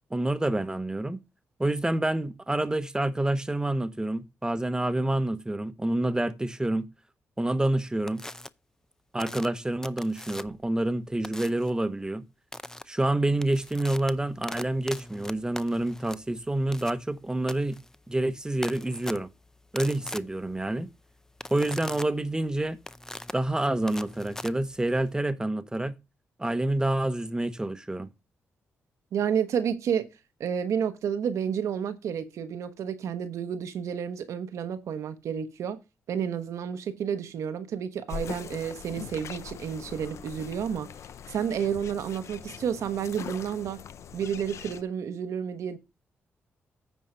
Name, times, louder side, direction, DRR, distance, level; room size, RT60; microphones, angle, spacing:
voice 1, 0.1-1.2 1.6-6.9 7.4-8.2 9.1-12.2 12.9-17.8 18.1-19.3 19.7-20.9 21.5-22.8 23.3-26.0 26.4-28.1, right 1 dB, 15° right, 1.0 m, -28 dB
sound 1, 8.1-8.5 9.2-10.7 11.2-11.7 12.5-12.8 13.3-25.2, left 1 dB, 10° left, 0.6 m, -41 dB
voice 2, 29.1-30.1 30.4-35.8 36.1-40.9 41.3-43.8 44.1-45.8, right 8 dB, 80° right, 1.1 m, -30 dB
sound 2, 38.1-44.8, left 8 dB, 70° left, 0.6 m, -42 dB
9.3 x 4.7 x 5.6 m
cardioid pair, 65°, 5 cm